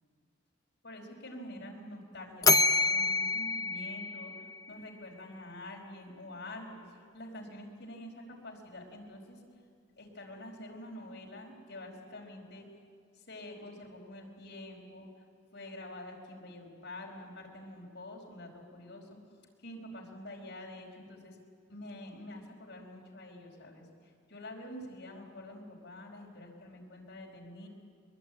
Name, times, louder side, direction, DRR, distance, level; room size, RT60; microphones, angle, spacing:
voice 1, 0.8-9.4 9.9-12.7 13.1-15.1 15.5-19.1 19.6-21.4 21.7-27.7, left 1 dB, 60° left, 0 dB, 4.9 m, -47 dB
Bell, 2.4-4.7, left 3 dB, 20° left, 0.6 m, -27 dB
22.5 x 22.0 x 9.1 m, 2.2 s
head